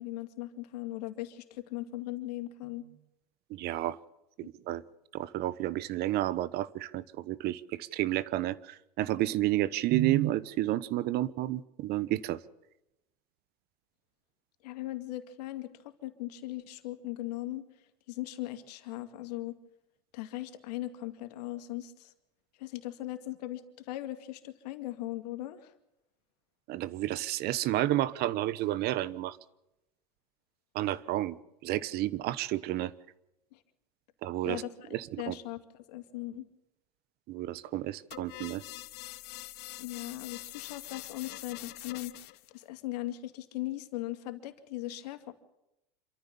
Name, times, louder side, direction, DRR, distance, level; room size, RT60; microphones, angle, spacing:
voice 1, 0.0-2.9 14.6-17.7 18.1-19.5 20.1-22.1 22.6-25.7 33.5-33.6 34.4-35.6 35.9-36.4 39.8-42.1 42.5-45.3, left 16 dB, 70° left, 9 dB, 2.3 m, -39 dB
voice 2, 3.5-4.0 4.4-4.8 5.1-12.4 26.7-29.4 30.7-31.4 31.6-32.9 34.2-34.6 34.9-35.3 37.3-38.6, right 15 dB, 50° right, 19 dB, 1.1 m, -31 dB
sound 1, 38.1-42.5, left 19 dB, 55° left, 1.2 m, -44 dB
27.0 x 14.0 x 7.0 m, 0.90 s
hypercardioid pair, 100°, 21 cm